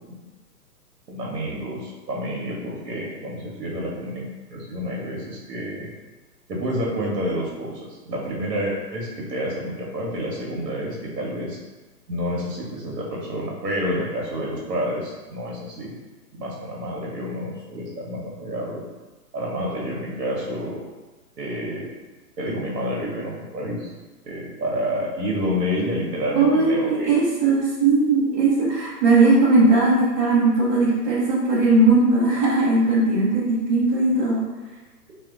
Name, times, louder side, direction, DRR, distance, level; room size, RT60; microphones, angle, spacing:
voice 1, 1.1-4.2 4.5-5.9 6.5-11.6 12.1-16.0 16.3-18.8 19.3-20.8 21.4-21.9 22.4-23.9 24.2-27.1, equal, 75° right, -3 dB, 0.9 m, -29 dB
voice 2, 26.3-34.5, right 3 dB, 20° right, -11 dB, 0.5 m, -19 dB
2.2 x 2.1 x 3.5 m, 1.2 s
hypercardioid pair, 135°, 49 cm